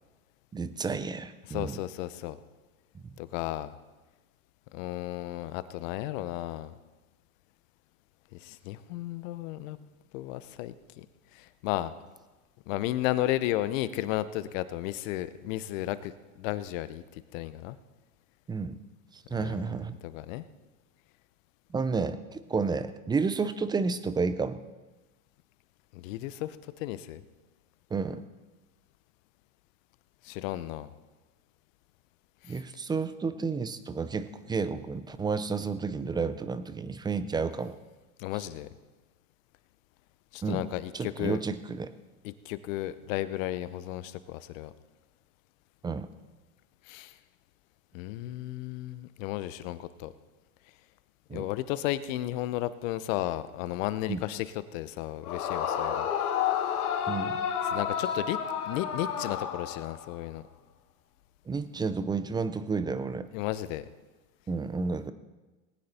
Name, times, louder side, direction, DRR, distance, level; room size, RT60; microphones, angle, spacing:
voice 1, 0.5-1.8 2.9-3.1 18.5-18.8 19.1-19.9 21.7-24.6 27.9-28.2 32.5-37.8 40.4-40.6 40.9-41.9 45.8-46.1 51.3-51.5 54.1-54.2 57.1-57.4 61.5-63.3 64.5-65.1, right 4 dB, 10° right, 13 dB, 0.4 m, -31 dB
voice 2, 1.5-2.4 3.2-3.7 4.7-6.8 8.4-9.8 10.1-11.1 11.3-11.9 12.7-16.1 16.4-17.8 19.4-19.6 20.0-20.4 25.9-27.2 30.2-30.9 32.4-32.6 38.2-38.7 40.3-41.4 42.2-44.7 46.9-47.2 47.9-50.1 51.3-56.1 57.6-58.4 58.7-60.5 63.3-63.9, left 14 dB, 60° left, 15 dB, 0.9 m, -34 dB
Yell / Screaming, 55.2-60.1, left 8 dB, 85° left, 1.5 m, -30 dB
19.0 x 9.6 x 4.3 m, 1.2 s
hypercardioid pair, 115°, 44 cm